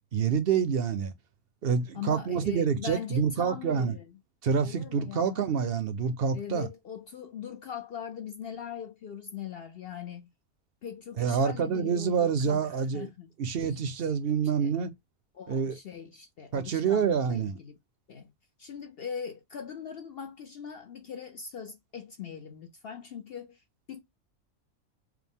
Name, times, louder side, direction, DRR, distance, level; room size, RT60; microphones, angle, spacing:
voice 1, 0.1-1.1 1.6-4.0 4.4-6.7 11.2-13.1 13.4-14.9 15.5-15.8 16.5-17.6, right 6 dB, 55° right, 0.7 m, -27 dB
voice 2, 1.9-4.1 4.6-5.4 6.3-10.3 10.8-13.3 13.7-13.8 14.6-14.7 15.4-17.8 18.1-18.3 18.6-23.6 23.9-24.0, left 7 dB, 60° left, 0.6 m, -41 dB
4.9 x 2.1 x 3.5 m
omnidirectional pair, 1.5 m